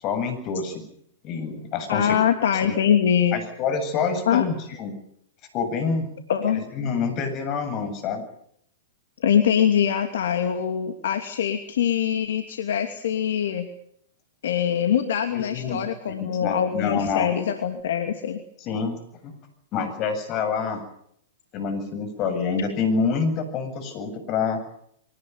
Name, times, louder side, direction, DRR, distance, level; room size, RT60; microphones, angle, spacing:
voice 1, 0.0-0.8 1.2-2.2 2.6-2.8 3.3-4.9 5.5-6.1 6.4-8.2 15.3-15.8 16.4-17.3 18.6-19.3 19.7-20.8 21.5-24.6, left 5 dB, 35° left, 8 dB, 7.9 m, -27 dB
voice 2, 1.9-3.4 4.3-4.4 6.3-6.6 9.2-13.7 14.4-18.4, left 9 dB, 65° left, 6 dB, 2.7 m, -23 dB
24.0 x 19.0 x 9.6 m, 0.71 s
hypercardioid pair, 115°, 0 cm